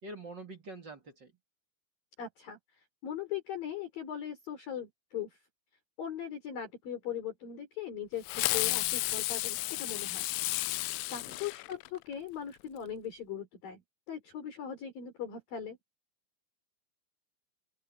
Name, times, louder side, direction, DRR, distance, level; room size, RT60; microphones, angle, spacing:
voice 1, 0.0-1.3 11.1-11.4, right 2 dB, 35° right, 2.0 m, -46 dB
voice 2, 2.2-5.4 6.0-10.3 11.1-13.8 14.1-15.8, left 9 dB, 45° left, 5.8 m, -39 dB
Fireworks, 8.3-12.1, left 24 dB, 85° left, 3.1 m, -32 dB
open air
omnidirectional pair, 5.7 m